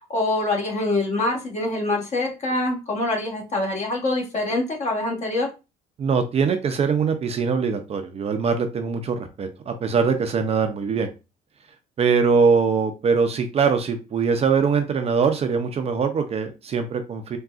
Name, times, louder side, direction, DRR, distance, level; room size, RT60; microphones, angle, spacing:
voice 1, 0.1-5.5, left 2 dB, 45° left, 1 dB, 1.2 m, -25 dB
voice 2, 6.0-11.1 12.0-17.4, right 5 dB, 40° right, 7 dB, 0.4 m, -22 dB
3.6 x 2.3 x 2.4 m, 0.28 s
cardioid pair, 110°, 17 cm